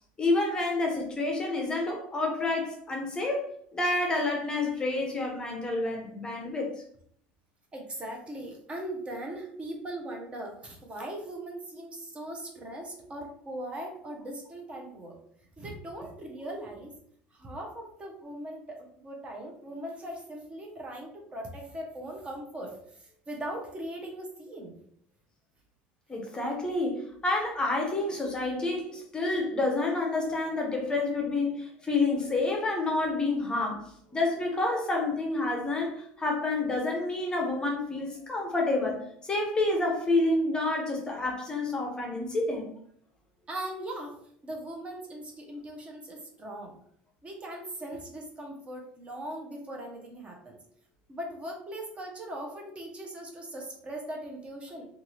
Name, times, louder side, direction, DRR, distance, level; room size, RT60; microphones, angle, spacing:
voice 1, 0.2-6.7 26.1-42.7, left 2 dB, 20° left, 1 dB, 0.7 m, -29 dB
voice 2, 7.7-15.2 15.6-16.9 17.3-24.8 43.5-44.1 44.4-46.7 47.2-50.6 51.1-54.9, right 1 dB, 25° right, 1 dB, 0.7 m, -39 dB
2.6 x 2.4 x 3.1 m, 0.65 s
supercardioid pair, 110°, 4 cm